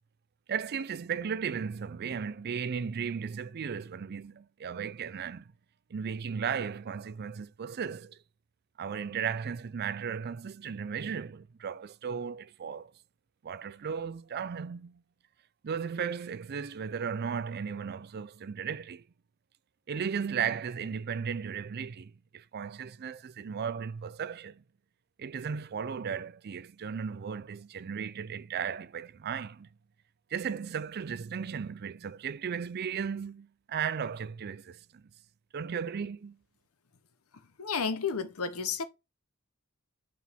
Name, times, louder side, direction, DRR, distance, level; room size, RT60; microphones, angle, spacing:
voice 1, 0.5-5.5 5.9-8.2 8.8-12.9 13.4-15.0 15.6-19.0 19.9-24.6 25.2-29.7 30.3-35.0 35.5-36.4, right 7 dB, 45° right, 0.4 m, -35 dB
voice 2, 37.6-38.8, left 5 dB, 80° left, 0.8 m, -31 dB
6.0 x 4.5 x 3.5 m
head